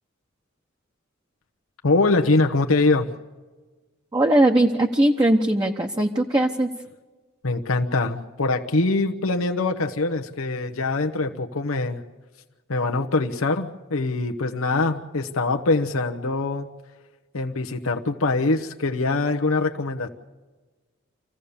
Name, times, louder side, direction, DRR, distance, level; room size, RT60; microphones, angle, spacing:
voice 1, 1.8-3.1 7.4-12.0 12.7-16.7 17.3-20.1, left 3 dB, 90° left, 4 dB, 1.0 m, -23 dB
voice 2, 4.1-6.7, right 1 dB, 20° right, 2 dB, 0.9 m, -20 dB
26.5 x 16.0 x 7.0 m, 1.3 s
head